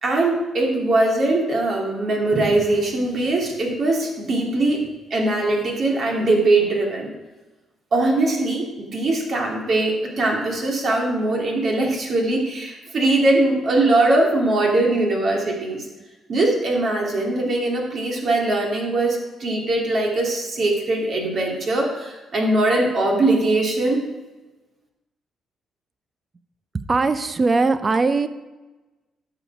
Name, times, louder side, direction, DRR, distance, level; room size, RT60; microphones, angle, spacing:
voice 1, 0.0-4.8 5.1-7.1 7.9-15.8 16.3-24.0, right 2 dB, 55° right, -1 dB, 2.9 m, -21 dB
voice 2, 26.9-28.3, right 3 dB, 30° right, 12 dB, 0.7 m, -20 dB
11.5 x 7.3 x 4.9 m, 1.2 s
cardioid pair, 90°, 0 cm